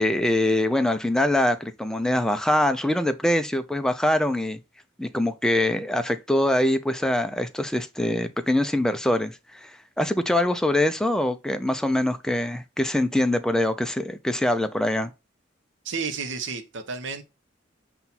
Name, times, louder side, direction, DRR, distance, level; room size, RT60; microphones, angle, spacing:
voice 1, 0.0-4.6 5.0-15.1, left 1 dB, 5° left, 0.4 m, -24 dB
voice 2, 15.8-17.2, right 5 dB, 70° right, 0.7 m, -31 dB
5.7 x 2.3 x 4.0 m
head